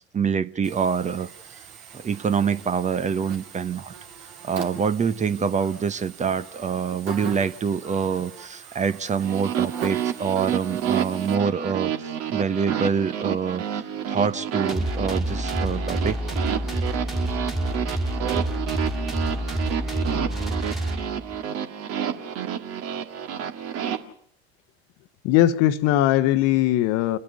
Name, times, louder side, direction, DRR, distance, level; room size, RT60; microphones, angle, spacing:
voice 1, 0.1-1.3 1.9-3.9 4.4-16.2, right 6 dB, 20° right, 14 dB, 0.9 m, -26 dB
Buzz, 0.6-11.3, right 7 dB, 65° right, 2.7 m, -42 dB
sound 1, 9.2-24.0, right 9 dB, 45° right, 2.0 m, -29 dB
sound 2, 14.7-21.4, right 1 dB, ahead, 2.2 m, -28 dB
voice 2, 25.2-27.2, left 13 dB, 50° left, 13 dB, 1.1 m, -20 dB
29.0 x 9.8 x 9.5 m, 0.67 s
hypercardioid pair, 75°, 32 cm